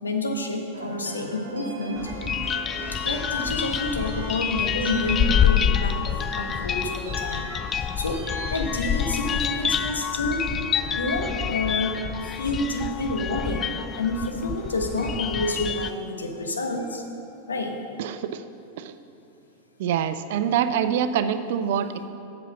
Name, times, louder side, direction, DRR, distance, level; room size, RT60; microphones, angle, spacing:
voice 1, 0.0-2.1 3.0-6.0 6.3-8.2 8.5-10.4 11.0-12.0 12.2-17.0 17.5-17.8, left 2 dB, 75° left, 3 dB, 1.0 m, -29 dB
sound 1, 0.7-16.9, right 3 dB, 70° right, 0.9 m, -42 dB
sound 2, 2.0-15.9, left 8 dB, 25° left, 0.3 m, -27 dB
voice 2, 18.0-18.4 18.8-18.9 19.8-22.1, right 8 dB, 55° right, 11 dB, 0.4 m, -25 dB
8.2 x 6.9 x 6.0 m, 2.6 s
figure-of-eight pair, 90°, 0 cm